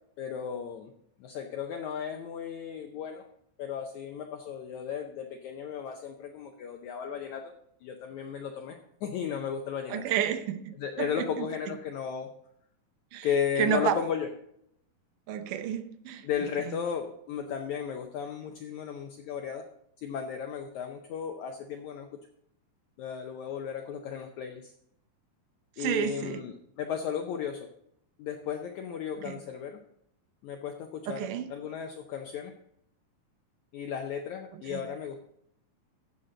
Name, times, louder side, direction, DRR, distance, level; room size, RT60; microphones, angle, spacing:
voice 1, 0.2-0.9 1.2-3.3 3.6-7.5 7.8-10.0 10.8-12.3 13.2-14.3 16.2-19.6 20.0-22.1 23.0-24.7 25.8-27.7 28.2-29.8 30.4-32.5 33.7-35.3, left 8 dB, 85° left, 1.6 m, -35 dB
voice 2, 9.9-11.5 13.1-13.3 13.6-14.0 15.3-16.3 16.7-16.8 25.8-26.4 29.2-29.4 31.1-31.5 34.7-34.8, right 10 dB, 75° right, 2.1 m, -31 dB
14.5 x 6.8 x 3.8 m
omnidirectional pair, 4.3 m